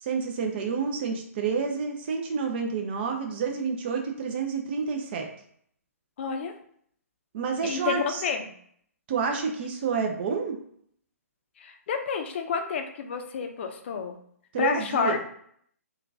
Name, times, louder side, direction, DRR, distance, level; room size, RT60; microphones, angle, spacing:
voice 1, 0.0-5.3 7.3-8.2 9.1-10.6 14.5-15.2, right 5 dB, 40° right, 3 dB, 0.5 m, -29 dB
voice 2, 6.2-6.5 7.6-8.4 11.6-14.2 14.6-15.2, left 6 dB, 45° left, 6 dB, 0.5 m, -29 dB
3.7 x 2.3 x 2.6 m, 0.64 s
figure-of-eight pair, 135°, 8 cm